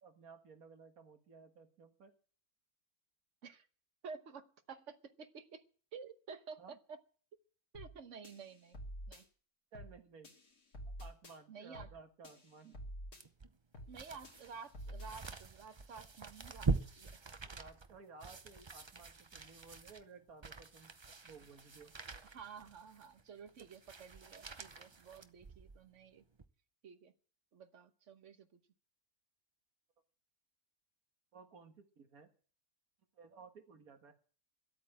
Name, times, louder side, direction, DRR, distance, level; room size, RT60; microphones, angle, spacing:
voice 1, 0.0-2.1 6.6-6.8 9.7-10.3 11.0-12.8 17.5-20.9 21.2-22.0 22.6-22.7 31.3-32.3 33.1-34.1, right 4 dB, 75° right, 2.1 m, -56 dB
voice 2, 4.0-5.6 5.9-6.8 7.7-8.8 9.1-9.2 11.5-11.9 13.9-17.3 22.2-26.2 26.8-27.1 27.5-28.6, right 5 dB, 60° right, 1.3 m, -52 dB
sound 1, 7.7-8.0 8.2-9.2 9.7-10.0 10.2-11.4 11.7-12.0 12.2-13.2 13.7-14.0 14.2-15.4, equal, 90° left, 3.1 m, -49 dB
sound 2, 13.2-25.9 26.3-26.4, right 4 dB, 30° right, 0.5 m, -44 dB
12.5 x 8.6 x 8.6 m
omnidirectional pair, 1.5 m